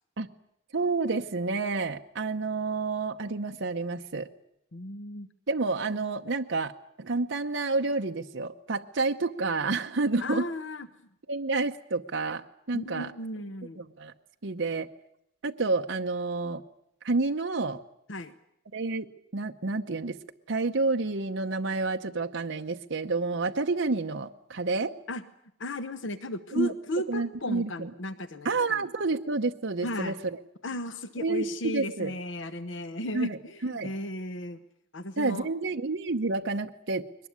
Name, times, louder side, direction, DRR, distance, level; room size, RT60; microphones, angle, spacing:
voice 1, 0.7-4.3 5.5-6.7 7.0-10.5 11.3-13.1 13.8-14.1 14.4-14.9 15.4-16.6 17.0-17.8 18.7-19.1 19.3-20.2 20.5-24.9 26.5-26.7 27.1-27.9 28.4-30.4 31.2-32.1 33.1-33.9 35.2-37.1, right 3 dB, 65° right, 4 dB, 0.9 m, -29 dB
voice 2, 4.7-5.3 10.2-10.9 12.7-13.8 18.1-18.4 25.1-25.2 25.6-28.9 29.8-30.2 30.6-34.6 34.9-35.5, left 1 dB, 65° left, 12 dB, 1.0 m, -35 dB
22.0 x 19.5 x 9.6 m, 0.76 s
head